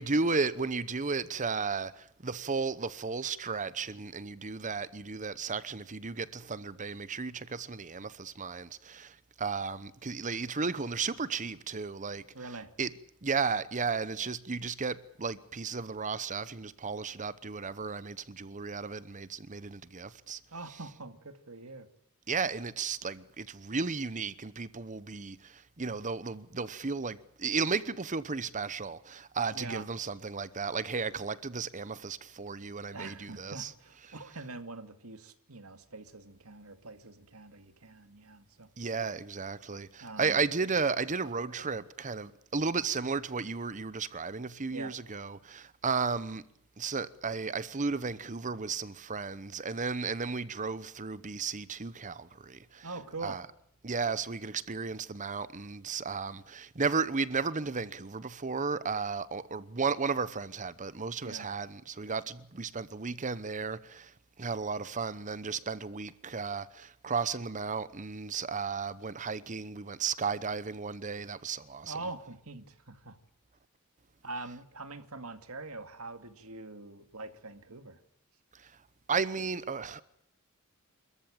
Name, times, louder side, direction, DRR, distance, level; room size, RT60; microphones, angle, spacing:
voice 1, 0.0-12.2 12.8-12.9 13.2-20.4 22.3-33.7 38.8-46.4 46.8-52.9 53.2-53.4 53.8-71.9 78.5-78.7 79.1-80.0, right 4 dB, 35° right, 0.9 m, -34 dB
voice 2, 12.3-12.7 20.5-21.9 29.5-29.9 32.9-38.7 40.0-40.4 41.4-41.6 44.7-44.9 52.8-53.4 61.2-61.5 71.9-73.2 74.2-78.0, right 3 dB, 75° right, 2.3 m, -44 dB
28.5 x 14.0 x 8.9 m
head